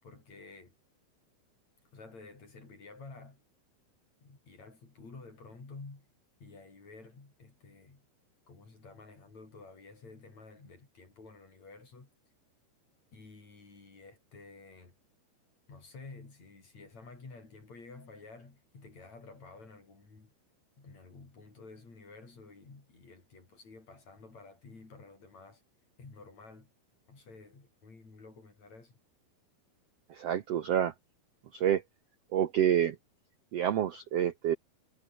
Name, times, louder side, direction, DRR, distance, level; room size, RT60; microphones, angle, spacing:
voice 1, 0.0-0.7 1.9-3.4 4.2-6.1 6.4-8.1 8.5-12.1 13.1-14.9 15.7-20.3 20.8-25.6 26.0-26.7 27.1-29.0, left 3 dB, 45° left, 7.5 m, -51 dB
voice 2, 30.1-30.9 31.5-31.8 32.3-32.9 33.5-34.5, right 10 dB, 80° right, 1.4 m, -28 dB
omnidirectional pair, 4.4 m